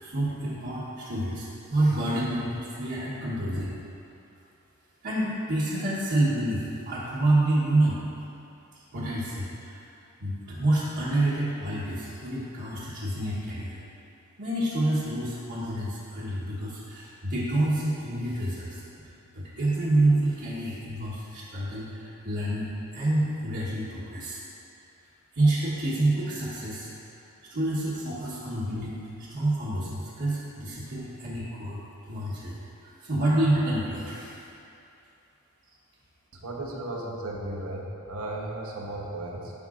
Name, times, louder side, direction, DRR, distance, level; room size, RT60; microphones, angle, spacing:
voice 1, 0.0-3.7 5.0-8.0 8.9-9.8 10.2-13.8 14.4-18.8 19.3-24.4 25.3-26.9 27.5-31.8 32.1-32.5 32.8-34.3, right 1 dB, 55° right, -11 dB, 1.1 m, -28 dB
voice 2, 36.3-39.5, right 1 dB, 75° right, -2 dB, 1.0 m, -35 dB
12.0 x 5.3 x 2.5 m, 2.8 s
head